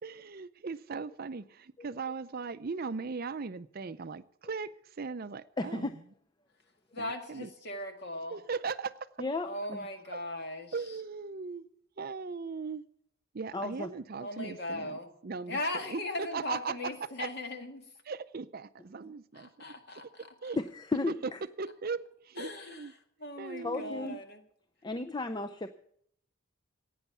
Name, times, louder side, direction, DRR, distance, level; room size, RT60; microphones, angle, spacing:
voice 1, 0.0-5.9 7.0-7.5 8.3-9.1 10.1-10.2 10.7-11.7 12.0-12.8 13.3-15.6 15.9-16.9 17.2-17.3 18.1-19.5 20.2-20.6 21.1-21.2 21.6-22.9 23.4-24.2, right 5 dB, 45° right, 0.5 m, -38 dB
voice 2, 5.6-6.0 9.2-9.8 13.5-13.9 20.6-21.4 23.6-24.2 24.8-25.7, left 2 dB, 20° left, 0.5 m, -34 dB
voice 3, 6.9-8.4 9.4-10.7 14.2-15.1 15.5-17.8 19.3-20.3 22.4-22.9 23.2-24.4, left 2 dB, 50° left, 1.9 m, -38 dB
16.0 x 9.3 x 7.1 m
head